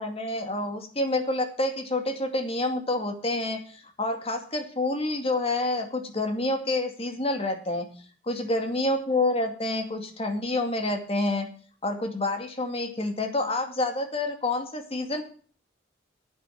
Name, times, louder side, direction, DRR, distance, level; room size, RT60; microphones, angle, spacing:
voice 1, 0.0-7.9 8.2-11.5 11.8-15.2, left 2 dB, 35° left, 5 dB, 2.3 m, -28 dB
10.5 x 8.9 x 6.4 m, 0.42 s
head